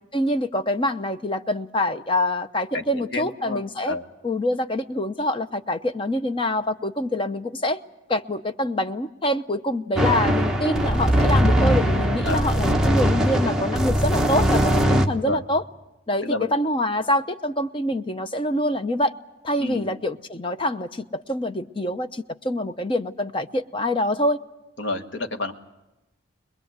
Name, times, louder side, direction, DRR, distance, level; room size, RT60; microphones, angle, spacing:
voice 1, 0.1-4.0 4.2-7.8 8.1-15.6 16.1-19.1 19.4-24.4, left 1 dB, 25° left, 9 dB, 0.8 m, -25 dB
voice 2, 2.7-4.0 12.2-12.6 15.1-15.4 16.2-16.5 19.6-19.8 24.8-25.5, left 2 dB, 70° left, 6 dB, 1.6 m, -30 dB
sound 1, 10.0-15.1, equal, 5° right, 1.2 m, -20 dB
23.0 x 21.5 x 8.1 m, 0.98 s
head